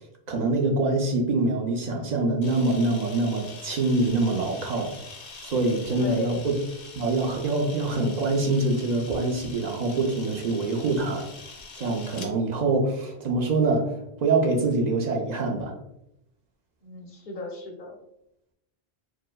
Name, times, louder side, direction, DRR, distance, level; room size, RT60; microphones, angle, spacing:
voice 1, 0.3-4.9 5.4-6.5 7.0-11.3 11.8-15.7, right 2 dB, 55° right, 1 dB, 0.5 m, -25 dB
Camera, 2.4-12.3, left 4 dB, 90° left, 1.0 m, -44 dB
voice 2, 6.0-6.4 16.8-18.0, left 2 dB, 55° left, 1 dB, 0.6 m, -36 dB
4.6 x 2.0 x 2.2 m, 0.81 s
omnidirectional pair, 1.1 m